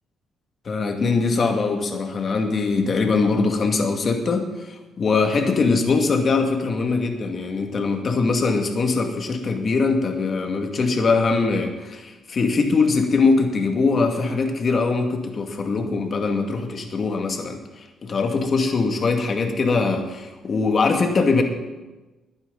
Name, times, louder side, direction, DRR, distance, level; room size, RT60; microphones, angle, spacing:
voice 1, 0.7-21.4, left 4 dB, 45° left, 3 dB, 2.2 m, -22 dB
21.0 x 9.5 x 4.1 m, 1.1 s
cardioid pair, 90°, 0 cm